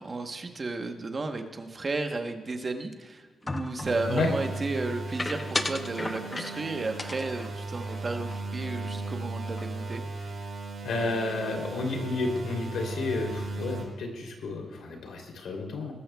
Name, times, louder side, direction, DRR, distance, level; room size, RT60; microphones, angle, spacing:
voice 1, 0.0-3.2 3.5-10.0, right 3 dB, 30° right, 5 dB, 1.0 m, -33 dB
sound 1, 3.5-4.0 5.2-6.7 7.0-8.7 9.0-9.2 9.5-10.0, left 2 dB, 20° left, 0.6 m, -35 dB
sound 2, 3.8-13.8, right 3 dB, 55° right, 4.7 m, -36 dB
voice 2, 10.8-15.9, left 3 dB, 80° left, 2 dB, 3.1 m, -31 dB
21.0 x 13.5 x 2.3 m, 1.4 s
wide cardioid pair, 160°, 0 cm